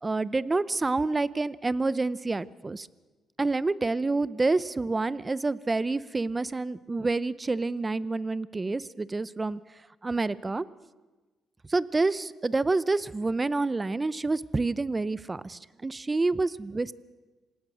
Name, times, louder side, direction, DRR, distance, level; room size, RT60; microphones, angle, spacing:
voice 1, 0.0-2.9 3.4-9.6 10.0-10.7 11.7-16.9, right 3 dB, 20° right, 18 dB, 0.7 m, -28 dB
27.0 x 18.5 x 6.3 m, 1.3 s
cardioid pair, 105°, 0 cm